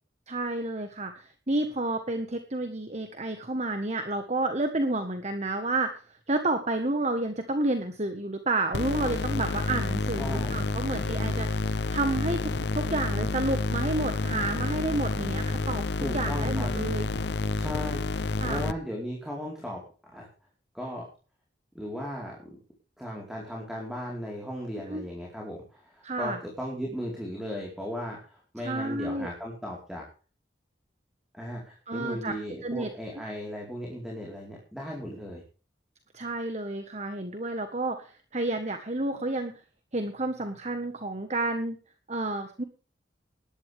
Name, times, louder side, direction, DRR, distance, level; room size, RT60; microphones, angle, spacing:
voice 1, 0.3-15.8 16.1-17.2 18.4-18.6 24.9-25.0 26.0-26.4 28.6-29.3 31.9-32.3 32.6-32.9 36.1-39.5 39.9-41.8 42.1-42.6, right 2 dB, 35° right, 7 dB, 1.6 m, -30 dB
sound 1, 8.7-18.7, left 3 dB, 65° left, 0.8 m, -29 dB
voice 2, 10.2-10.6 16.0-16.7 17.6-19.8 20.1-20.3 20.7-21.1 21.7-22.6 23.0-30.1 31.3-35.4, equal, ahead, -2 dB, 4.6 m, -36 dB
19.0 x 12.0 x 3.7 m, 0.37 s
head